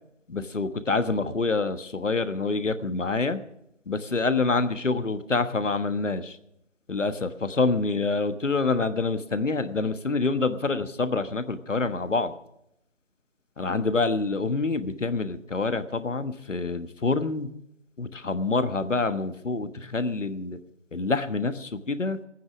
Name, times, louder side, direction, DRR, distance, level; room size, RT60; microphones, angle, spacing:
voice 1, 0.3-3.4 3.9-6.4 6.9-12.3 13.6-17.5 18.0-20.6 20.9-22.2, left 3 dB, 75° left, 11 dB, 1.3 m, -26 dB
16.5 x 9.3 x 6.2 m, 0.80 s
figure-of-eight pair, 170°, 38 cm